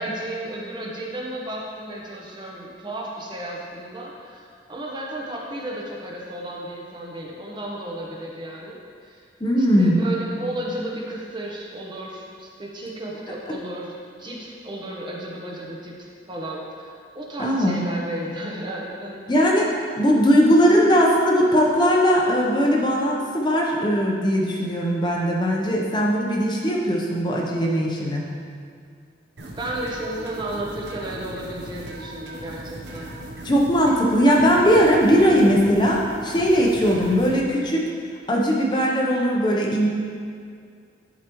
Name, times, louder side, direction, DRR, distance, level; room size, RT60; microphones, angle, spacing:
voice 1, 0.0-9.2 9.6-13.9 14.2-16.0 16.3-19.3 29.6-33.1, right 1 dB, 25° right, -2 dB, 0.8 m, -33 dB
voice 2, 9.4-10.0 17.4-17.8 19.3-19.7 20.0-28.3 33.4-37.8 38.3-39.9, equal, 25° left, -2 dB, 0.7 m, -19 dB
sound 1, 29.4-37.4, right 1 dB, 70° right, 0.8 m, -38 dB
11.0 x 4.9 x 3.0 m, 2.2 s
head